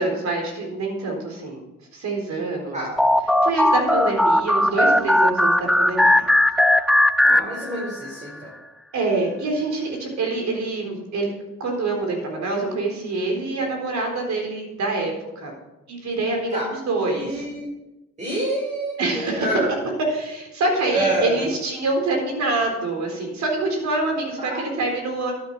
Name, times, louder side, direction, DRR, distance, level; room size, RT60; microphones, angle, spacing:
voice 1, 0.0-1.6 1.9-2.8 3.4-6.1 6.7-6.8 8.9-11.3 11.6-15.5 15.9-16.6 16.9-17.5 19.0-19.6 20.1-25.3, right 2 dB, 65° right, 2 dB, 4.2 m, -25 dB
sound 1, 3.0-8.1, left 1 dB, ahead, 0.4 m, -18 dB
voice 2, 7.2-8.5 16.5-16.8 17.1-17.7 18.2-19.7 20.9-21.4 24.4-24.6, right 1 dB, 25° right, -4 dB, 4.8 m, -27 dB
13.0 x 8.8 x 4.9 m, 0.97 s
cardioid pair, 90°, 30 cm